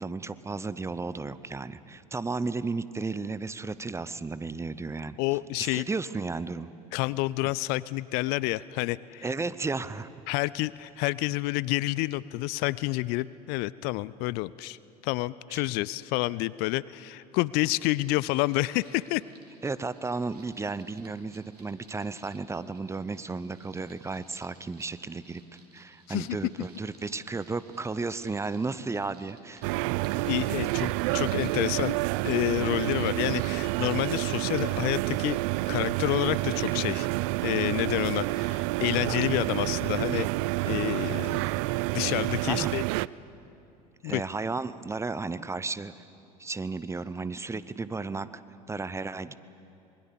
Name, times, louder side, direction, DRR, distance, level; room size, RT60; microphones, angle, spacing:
voice 1, 0.0-5.2 5.6-6.7 9.2-10.1 15.5-15.6 19.6-25.4 25.7-29.7 42.5-42.7 44.0-45.9 46.4-48.3 48.7-49.3, right 3 dB, 15° right, 15 dB, 0.8 m, -33 dB
voice 2, 5.2-5.9 6.9-9.3 10.3-14.8 15.0-19.2 26.1-26.3 30.3-32.0 32.2-35.4 35.7-37.1 37.4-40.3 40.6-41.5 41.9-42.8 44.0-44.2, left 19 dB, 55° left, 20 dB, 0.5 m, -29 dB
sound 1, 18.2-34.4, right 3 dB, 80° right, 2.6 m, -58 dB
sound 2, 29.6-43.1, right 20 dB, 55° right, 0.4 m, -29 dB
26.5 x 21.0 x 7.1 m, 2.7 s
figure-of-eight pair, 70°, 20 cm